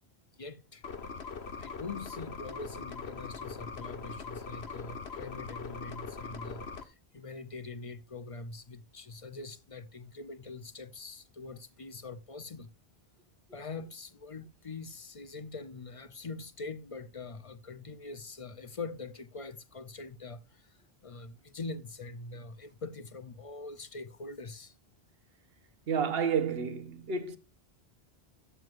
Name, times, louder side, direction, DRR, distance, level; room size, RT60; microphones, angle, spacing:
voice 1, 0.4-0.8 1.6-12.7 13.5-20.8 21.0-24.7, left 3 dB, 40° left, 0.6 m, -43 dB
sound 1, 0.8-6.8, left 5 dB, 90° left, 1.3 m, -41 dB
voice 2, 25.9-27.4, right 6 dB, 70° right, 1.2 m, -30 dB
12.0 x 7.7 x 2.5 m
omnidirectional pair, 1.1 m